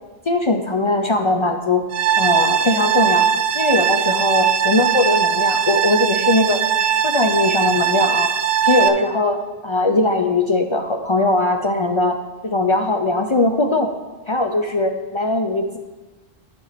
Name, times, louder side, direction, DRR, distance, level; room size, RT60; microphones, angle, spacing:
voice 1, 0.3-1.8 2.2-3.3 3.5-6.6 7.0-8.3 8.6-12.2 12.4-13.9 14.3-15.8, left 2 dB, 40° left, 4 dB, 0.5 m, -20 dB
sound 1, 1.9-8.9, right 8 dB, 85° right, 0.8 m, -19 dB
11.5 x 6.2 x 4.1 m, 1.2 s
omnidirectional pair, 1.0 m